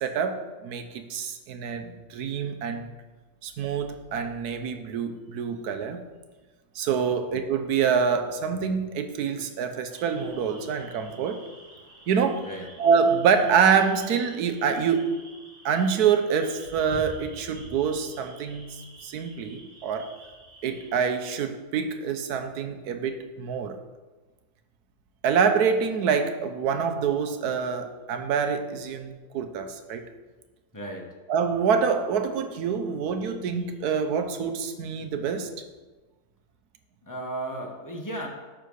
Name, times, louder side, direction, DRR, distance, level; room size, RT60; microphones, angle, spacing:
voice 1, 0.0-2.9 3.4-6.0 6.7-11.4 12.1-12.5 12.8-15.1 15.6-18.8 19.0-20.1 20.6-23.8 25.2-30.1 31.3-35.5, right 6 dB, 80° right, 7 dB, 1.3 m, -26 dB
sound 1, 9.9-20.9, equal, 35° right, 1.6 m, -48 dB
voice 2, 30.7-31.1 37.0-38.3, right 1 dB, 15° left, 0 dB, 1.0 m, -35 dB
10.5 x 3.7 x 6.3 m, 1.3 s
omnidirectional pair, 1.6 m